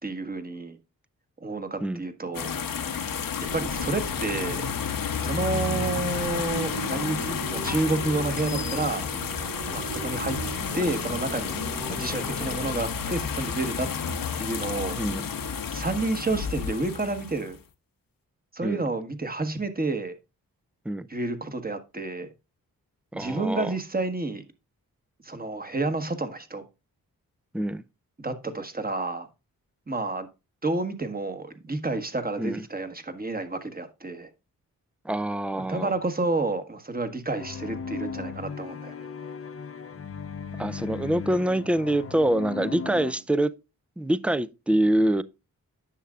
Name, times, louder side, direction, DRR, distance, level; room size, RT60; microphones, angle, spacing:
voice 1, 0.0-0.8 1.4-2.5 3.5-4.6 5.1-9.1 9.7-10.4 10.7-11.6 11.9-13.9 14.4-15.0 15.7-17.6 18.5-20.2 21.1-22.3 23.1-24.4 25.2-26.6 28.2-29.3 29.9-30.3 30.6-34.3 35.6-39.1, right 2 dB, 25° right, 1.4 m, -30 dB
sound 1, 2.3-17.6, left 6 dB, 65° left, 1.0 m, -31 dB
sound 2, 3.4-12.7, right 4 dB, 65° right, 2.0 m, -38 dB
voice 2, 23.1-23.7 27.5-27.8 32.4-32.6 35.0-35.9 40.6-43.5 44.0-45.2, right 1 dB, 5° right, 0.5 m, -25 dB
sound 3, 37.4-43.1, left 5 dB, 40° left, 0.8 m, -37 dB
10.0 x 6.4 x 2.4 m
cardioid pair, 55°, 37 cm